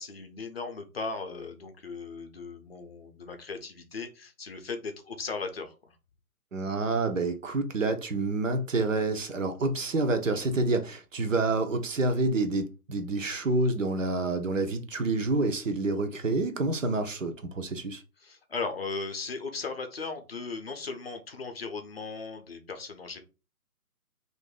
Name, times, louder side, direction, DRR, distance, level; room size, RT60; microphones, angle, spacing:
voice 1, 0.0-5.7 18.2-23.2, left 4 dB, 40° left, 0.6 m, -37 dB
voice 2, 6.5-18.0, right 2 dB, 55° right, 0.6 m, -28 dB
2.6 x 2.5 x 3.7 m
figure-of-eight pair, 145°, 46 cm